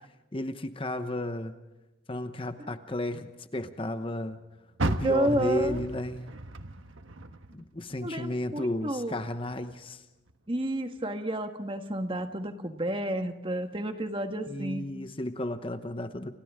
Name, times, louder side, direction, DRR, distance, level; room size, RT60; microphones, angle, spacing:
voice 1, 0.3-1.6 2.1-4.4 4.9-6.3 7.5-10.0 14.4-16.3, left 1 dB, 25° left, 9 dB, 0.9 m, -33 dB
Car, 4.7-8.0 8.4-9.8 10.3-10.4 11.0-11.1, right 2 dB, 85° right, 1.4 m, -35 dB
voice 2, 5.0-5.8 8.0-9.2 10.5-15.0, right 1 dB, 25° right, 6 dB, 1.6 m, -30 dB
29.0 x 29.0 x 3.7 m, 1.1 s
head